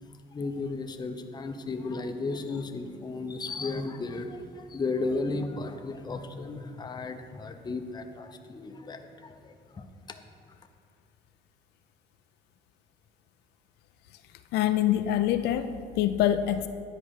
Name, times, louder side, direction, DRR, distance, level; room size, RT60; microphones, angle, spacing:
voice 1, 0.1-10.2, left 3 dB, 25° left, 6 dB, 0.7 m, -34 dB
voice 2, 14.5-16.7, left 11 dB, 80° left, 9 dB, 0.4 m, -25 dB
9.9 x 4.9 x 6.4 m, 2.2 s
cardioid pair, 110°, 17 cm